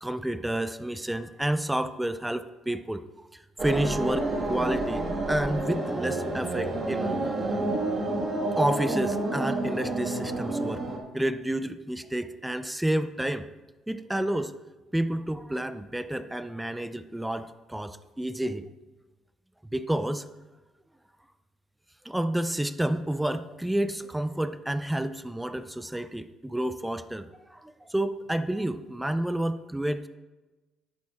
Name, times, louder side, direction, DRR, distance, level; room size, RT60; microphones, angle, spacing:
voice 1, 0.0-3.0 3.6-7.3 8.6-10.8 11.1-13.5 13.9-14.5 14.9-18.6 19.7-20.2 22.0-30.1, right 1 dB, 5° right, 11 dB, 0.4 m, -30 dB
sound 1, 3.6-11.0, right 2 dB, 30° right, 1.7 m, -29 dB
10.5 x 8.6 x 3.7 m, 1.1 s
cardioid pair, 105°, 0 cm